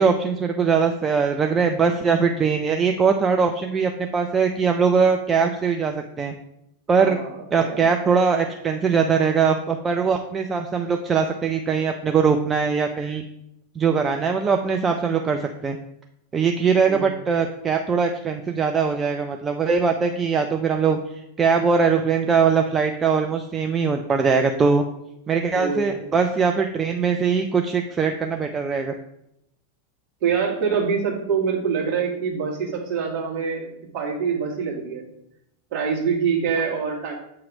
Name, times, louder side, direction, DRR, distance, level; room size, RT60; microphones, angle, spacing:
voice 1, 0.0-6.3 6.9-7.2 7.5-13.2 13.8-15.8 16.3-21.0 21.4-24.8 25.3-28.9, right 5 dB, 20° right, 4 dB, 0.4 m, -21 dB
voice 2, 7.0-7.9 16.9-17.2 25.5-26.1 30.2-33.7 33.9-35.1 35.7-37.1, right 6 dB, 45° right, -2 dB, 1.6 m, -25 dB
7.4 x 2.9 x 4.7 m, 0.81 s
figure-of-eight pair, 90°, 0 cm